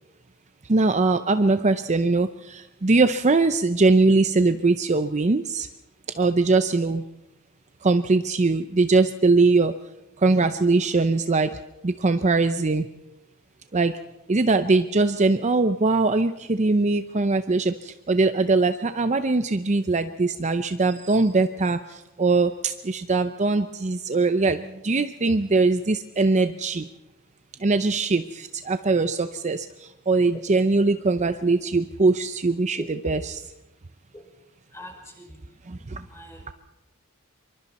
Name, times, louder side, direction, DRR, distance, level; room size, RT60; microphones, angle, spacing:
voice 1, 0.7-5.7 6.2-7.0 7.8-9.7 10.2-11.5 11.8-12.8 13.7-13.9 14.3-21.8 22.2-26.8 27.6-29.7 30.1-33.4 35.7-36.0, right 3 dB, 30° right, 10 dB, 0.6 m, -21 dB
voice 2, 32.8-33.2 34.1-34.3 34.7-35.6 36.0-36.5, equal, 15° left, 0 dB, 5.8 m, -40 dB
26.0 x 24.0 x 4.2 m, 0.90 s
head